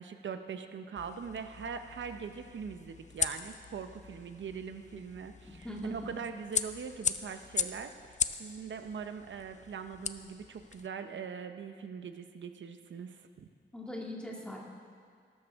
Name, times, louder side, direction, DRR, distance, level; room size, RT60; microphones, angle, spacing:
voice 1, 0.0-13.5, right 6 dB, 75° right, 8 dB, 0.8 m, -42 dB
sound 1, 1.0-10.9, left 6 dB, 40° left, 0.4 m, -39 dB
voice 2, 5.6-6.1 13.7-14.6, left 1 dB, 5° left, -3 dB, 2.2 m, -40 dB
18.0 x 13.0 x 3.6 m, 2.1 s
wide cardioid pair, 120°, 20 cm